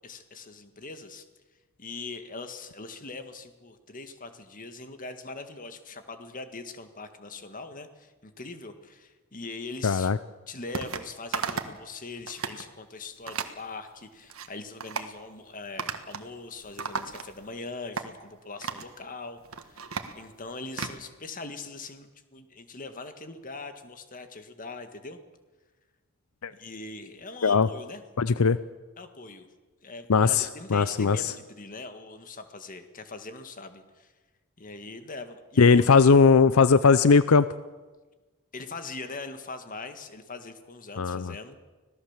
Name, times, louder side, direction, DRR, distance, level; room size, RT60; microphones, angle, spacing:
voice 1, 0.0-1.3 1.8-10.1 10.5-25.2 26.5-28.0 29.0-29.5 29.8-34.1 34.6-35.9 38.5-41.6, left 3 dB, 40° left, 8 dB, 1.9 m, -41 dB
voice 2, 9.8-10.2 26.4-26.5 27.4-27.7 28.2-28.6 30.1-30.5 30.7-31.2 35.6-37.5 41.0-41.3, left 5 dB, 75° left, 15 dB, 0.6 m, -19 dB
sound 1, 10.7-11.0 11.3-11.8 12.2-12.6 13.3-13.6 14.1-14.5 14.8-15.1 15.8-16.3 16.6-17.5 18.0-18.1 18.6-18.9 19.4-21.0, right 5 dB, 70° right, 1.6 m, -34 dB
25.5 x 17.5 x 7.4 m, 1.2 s
head